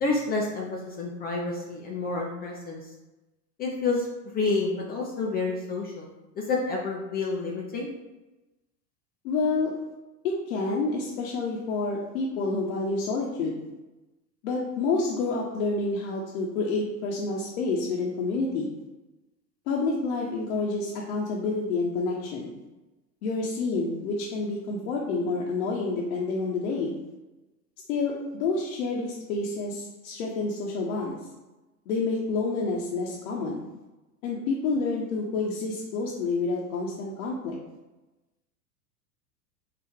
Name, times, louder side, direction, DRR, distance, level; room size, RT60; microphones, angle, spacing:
voice 1, 0.0-2.8 3.6-4.1 4.3-6.1 6.4-7.9, left 3 dB, 20° left, -2 dB, 0.4 m, -29 dB
voice 2, 9.2-9.7 10.5-13.6 14.4-18.7 19.7-22.6 23.2-26.9 27.9-31.2 31.9-33.6 34.2-37.5, left 3 dB, 60° left, -4 dB, 0.9 m, -28 dB
4.7 x 2.5 x 3.5 m, 1.1 s
hypercardioid pair, 95°, 48 cm